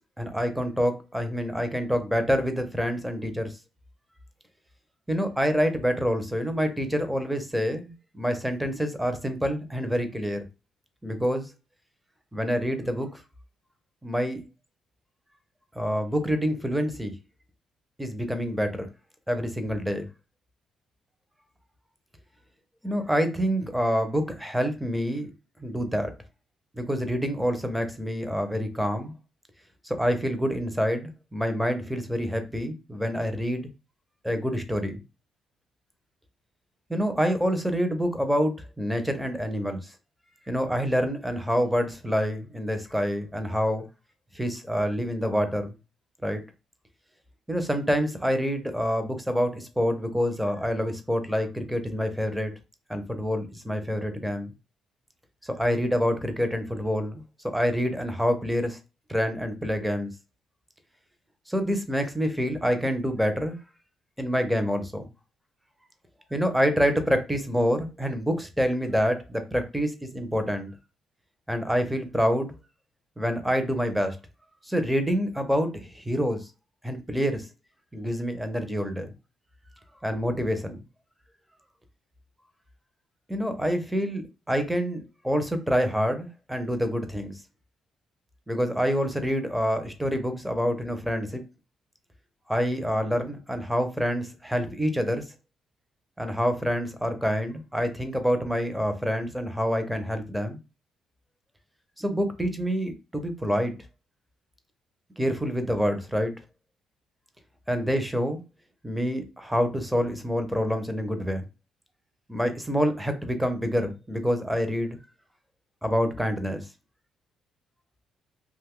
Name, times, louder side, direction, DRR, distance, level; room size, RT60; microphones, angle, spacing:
voice 1, 0.2-3.6 5.1-10.4 11.0-11.5 12.3-13.2 14.0-14.4 15.7-17.1 18.0-18.9 19.3-20.1 22.8-25.3 25.6-26.1 26.7-29.1 29.8-33.7 34.2-35.0 36.9-39.9 40.5-43.9 44.3-45.7 46.2-46.4 47.5-52.5 52.9-54.5 55.4-57.2 57.5-58.8 59.1-60.1 61.5-63.6 64.2-65.1 66.3-70.7 71.5-72.5 73.2-74.2 74.7-76.5 76.8-77.5 77.9-79.1 80.0-80.8 83.3-84.2 84.5-87.3 88.5-91.4 92.5-95.2 96.2-100.6 102.0-103.7 105.2-106.3 107.7-108.4 108.8-111.4 112.3-115.0 115.8-116.7, equal, 5° right, 0.7 m, -27 dB
2.6 x 2.3 x 3.6 m
cardioid pair, 90°, 0 cm